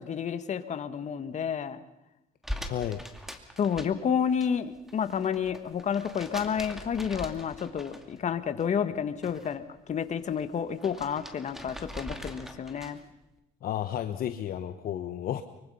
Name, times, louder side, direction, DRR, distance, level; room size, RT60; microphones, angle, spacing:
voice 1, 0.0-1.8 3.6-13.0, left 7 dB, 45° left, 10 dB, 1.7 m, -30 dB
sound 1, 2.4-4.5 4.8-8.3 8.6-9.5 9.9-13.1, equal, ahead, 2.4 m, -42 dB
voice 2, 2.7-3.0 13.6-15.4, left 11 dB, 60° left, 8 dB, 1.1 m, -32 dB
24.5 x 24.0 x 5.6 m, 0.94 s
cardioid pair, 110°, 17 cm